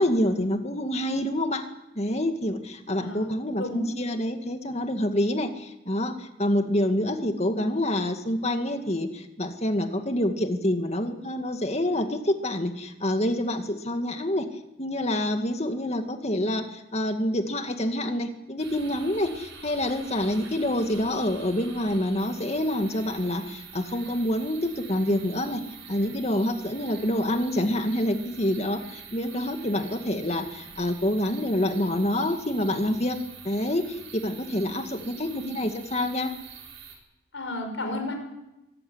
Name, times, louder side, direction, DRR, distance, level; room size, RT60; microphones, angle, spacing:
voice 1, 0.0-1.7 2.0-14.5 14.8-25.6 25.9-33.2 33.4-36.3, left 1 dB, 35° left, 6 dB, 2.1 m, -27 dB
voice 2, 3.0-3.9 35.2-35.5 37.3-38.1, left 1 dB, 75° left, 5 dB, 5.7 m, -33 dB
sound 1, 18.6-37.0, right 6 dB, 80° right, 6.7 m, -45 dB
23.5 x 15.0 x 9.7 m, 0.94 s
head